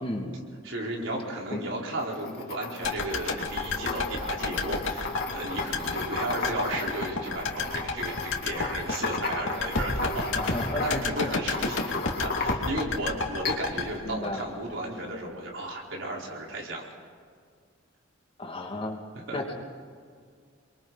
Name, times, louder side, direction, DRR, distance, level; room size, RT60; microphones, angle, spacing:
voice 1, 0.0-0.4 1.5-1.6 10.3-11.0 14.0-14.5 18.4-19.0 19.3-19.5, left 1 dB, 30° left, 1 dB, 2.4 m, -33 dB
voice 2, 0.6-11.9 12.2-16.9 19.1-19.4, right 1 dB, 75° right, -2 dB, 4.6 m, -34 dB
sound 1, 2.0-13.0 13.4-13.9, left 3 dB, 50° left, 2.5 m, -35 dB
sound 2, 2.8-15.0 15.3-15.4, left 3 dB, 75° left, 2.6 m, -31 dB
29.0 x 23.0 x 4.2 m, 2.1 s
head